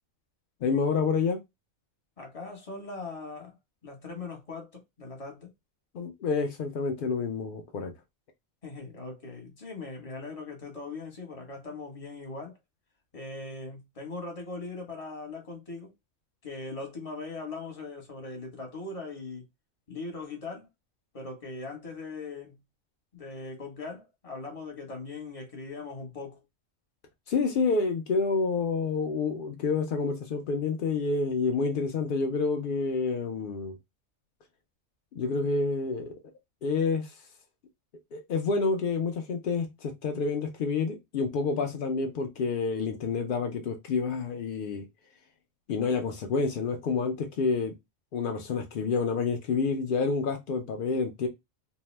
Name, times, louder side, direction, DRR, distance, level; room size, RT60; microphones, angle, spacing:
voice 1, 0.6-1.4 5.9-7.9 27.3-33.8 35.1-36.1 36.6-37.2 38.1-44.9 45.7-47.7 48.1-51.3, left 4 dB, 80° left, 0.4 m, -28 dB
voice 2, 2.2-3.5 3.8-5.5 8.6-12.6 13.1-15.9 16.4-19.4 19.9-20.7 21.1-22.6 23.1-26.4, left 3 dB, 30° left, 0.9 m, -40 dB
2.7 x 2.1 x 3.1 m
omnidirectional pair, 1.4 m